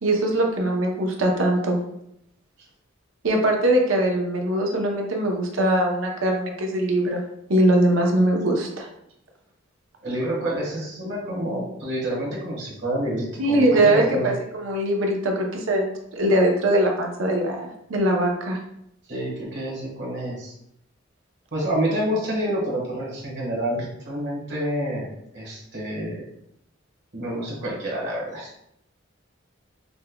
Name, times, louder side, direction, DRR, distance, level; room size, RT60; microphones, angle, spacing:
voice 1, 0.0-1.8 3.2-7.2 7.5-8.9 13.4-18.6, right 1 dB, 90° right, 1 dB, 0.7 m, -21 dB
voice 2, 10.0-14.3 19.1-20.5 21.5-26.2 27.1-28.5, right 1 dB, 60° right, -4 dB, 1.3 m, -28 dB
5.2 x 2.2 x 2.2 m, 0.77 s
head